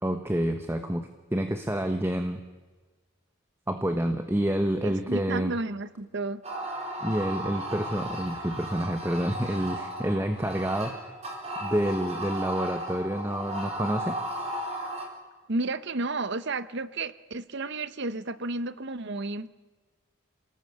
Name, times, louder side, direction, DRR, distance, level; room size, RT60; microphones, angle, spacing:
voice 1, 0.0-2.4 3.7-5.5 7.0-11.1 11.6-14.2, right 1 dB, 10° right, 7 dB, 1.1 m, -28 dB
voice 2, 4.8-6.4 15.5-19.5, right 3 dB, 55° right, 15 dB, 0.9 m, -32 dB
sound 1, 6.4-15.1, right 1 dB, 30° right, 4.2 m, -35 dB
28.0 x 19.0 x 7.9 m, 1.3 s
head